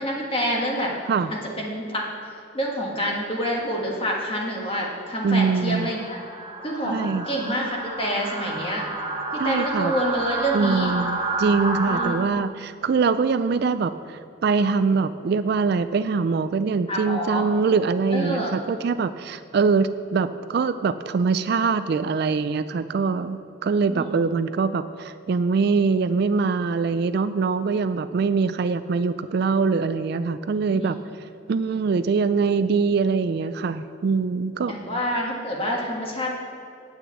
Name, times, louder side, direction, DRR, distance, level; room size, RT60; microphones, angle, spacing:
voice 1, 0.0-0.9 1.3-2.0 2.5-6.2 6.6-8.8 9.3-10.9 11.8-12.2 16.9-17.5 18.1-18.6 23.9-24.3 30.7-31.0 34.7-36.3, equal, 25° left, -1 dB, 1.5 m, -27 dB
sound 1, 3.5-3.7 4.3-12.1, right 2 dB, 20° right, 1.4 m, -30 dB
voice 2, 5.2-5.9 6.8-7.2 9.4-9.9 10.5-31.0 31.5-34.7, right 4 dB, 50° right, 12 dB, 0.3 m, -23 dB
9.0 x 5.9 x 8.2 m, 2.6 s
head